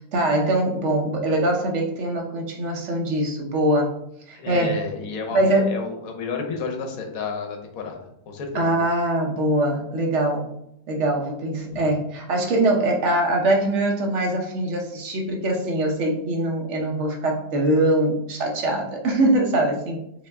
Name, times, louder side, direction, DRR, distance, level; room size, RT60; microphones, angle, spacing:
voice 1, 0.1-3.9 4.3-4.8 5.3-5.8 8.5-10.5 10.9-20.3, right 1 dB, 55° right, 1 dB, 0.9 m, -22 dB
voice 2, 4.3-8.7 11.7-11.8, left 5 dB, 60° left, 3 dB, 1.1 m, -31 dB
4.0 x 3.5 x 3.4 m, 0.80 s
omnidirectional pair, 1.9 m